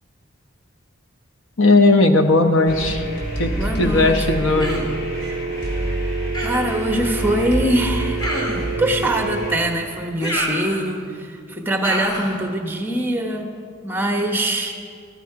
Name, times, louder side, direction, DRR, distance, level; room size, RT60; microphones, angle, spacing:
voice 1, 1.6-3.0 3.4-3.5 3.8-4.8, left 2 dB, 75° left, 7 dB, 1.0 m, -16 dB
sound 1, 2.7-9.6, equal, 55° left, 3.1 m, -28 dB
voice 2, 3.6-4.6 6.4-8.2 8.8-13.5 13.8-14.7, right 1 dB, 10° right, 4 dB, 1.1 m, -23 dB
Human voice, 4.6-5.0 6.3-6.8 8.2-8.8 10.2-11.1 11.8-12.4, equal, 20° left, 2.0 m, -27 dB
Telephone, 4.6-9.6, right 5 dB, 45° right, 0.3 m, -29 dB
15.0 x 14.0 x 4.8 m, 2.3 s
head